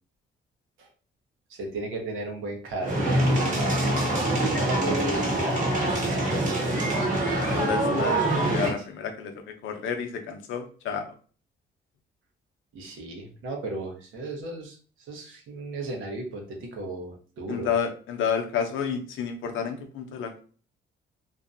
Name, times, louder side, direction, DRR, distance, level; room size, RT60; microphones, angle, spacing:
voice 1, 1.5-3.6 4.3-7.1 12.7-17.7, right 2 dB, 85° right, 0 dB, 0.9 m, -35 dB
sound 1, 2.8-8.7, right 1 dB, 40° right, 1.0 m, -25 dB
voice 2, 7.4-8.2 8.5-11.1 17.5-20.4, left 7 dB, 80° left, 6 dB, 0.6 m, -30 dB
2.6 x 2.2 x 2.5 m, 0.40 s
cardioid pair, 90°, 20 cm